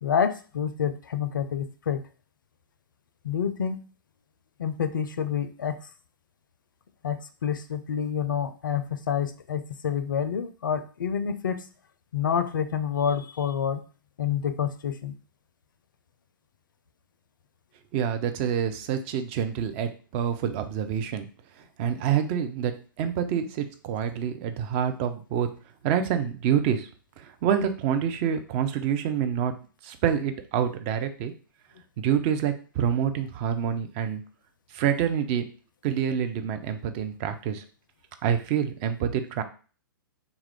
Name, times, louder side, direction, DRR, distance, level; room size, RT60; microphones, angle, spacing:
voice 1, 0.0-2.0 3.2-3.8 4.6-5.8 7.0-11.6 12.1-13.8 14.2-15.1, left 7 dB, 65° left, 11 dB, 0.4 m, -28 dB
voice 2, 17.9-21.3 21.8-22.7 23.0-25.5 25.8-26.9 27.2-29.5 29.8-31.3 32.0-34.2 34.7-35.4 35.8-37.6 38.2-39.4, right 8 dB, 30° right, 8 dB, 0.4 m, -27 dB
3.0 x 2.4 x 3.3 m, 0.38 s
figure-of-eight pair, 110°, 11 cm